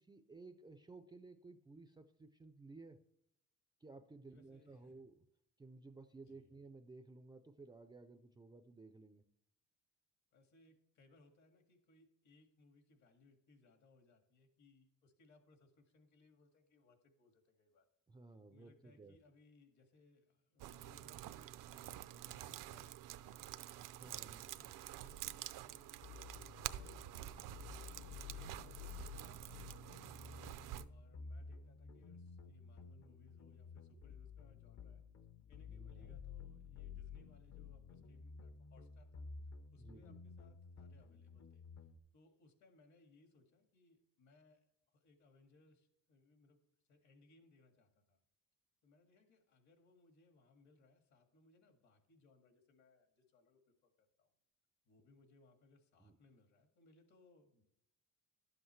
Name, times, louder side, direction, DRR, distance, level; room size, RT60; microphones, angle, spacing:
voice 1, 0.0-3.0 3.8-5.2 5.6-9.2 18.1-19.2 24.0-24.7 35.7-36.2 39.8-40.2 56.0-56.2, right 3 dB, 15° right, 8 dB, 0.4 m, -56 dB
voice 2, 4.3-5.0 6.2-6.5 10.3-17.9 18.5-24.4 24.9-26.1 26.4-30.3 30.9-35.1 35.5-39.3 39.7-41.6 42.1-46.6 46.9-48.2 48.8-54.3 54.8-57.6, left 2 dB, 65° left, 5 dB, 2.0 m, -68 dB
sound 1, 20.6-30.8, right 14 dB, 75° right, 0.5 m, -49 dB
sound 2, 26.0-42.0, left 5 dB, 50° left, 0.8 m, -53 dB
12.0 x 7.9 x 3.2 m, 0.80 s
cardioid pair, 160°, 32 cm